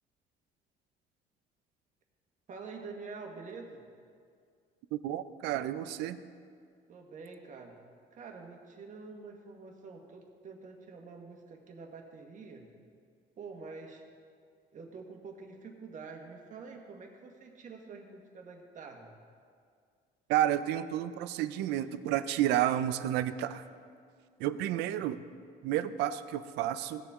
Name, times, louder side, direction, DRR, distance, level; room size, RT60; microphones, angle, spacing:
voice 1, 2.5-3.8 6.9-7.8 8.1-12.7 13.4-14.0 14.7-19.1 24.7-25.2, right 4 dB, 50° right, 2 dB, 1.6 m, -47 dB
voice 2, 4.9-6.2 20.3-23.6 24.4-25.2 25.6-27.1, right 12 dB, 90° right, 13 dB, 0.5 m, -31 dB
17.0 x 6.9 x 3.7 m, 2.2 s
cardioid pair, 110°, 17 cm